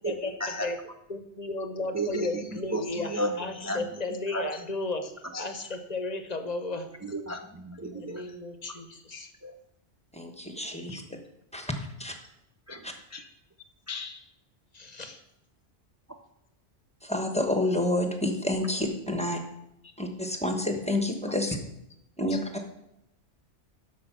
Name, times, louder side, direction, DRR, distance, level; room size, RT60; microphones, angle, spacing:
voice 1, 0.0-0.7 1.9-4.0 4.3-4.6 5.3-5.4 7.0-8.4 8.7-8.8 9.1-9.5 10.9-11.1 12.7-13.3 13.9-14.2 16.1-16.2 19.8-19.9 22.3-22.4, right 1 dB, 20° right, 4 dB, 0.4 m, -35 dB
voice 2, 1.1-5.0 5.4-6.9 7.8-9.3 14.7-15.2, left 2 dB, 40° left, 7 dB, 1.0 m, -34 dB
voice 3, 10.1-11.0 11.5-11.7 12.0-12.2 12.8-12.9 17.0-19.4 20.0-21.6 22.2-22.4, left 1 dB, 5° left, 4 dB, 1.1 m, -28 dB
12.5 x 5.2 x 6.0 m, 0.83 s
omnidirectional pair, 1.2 m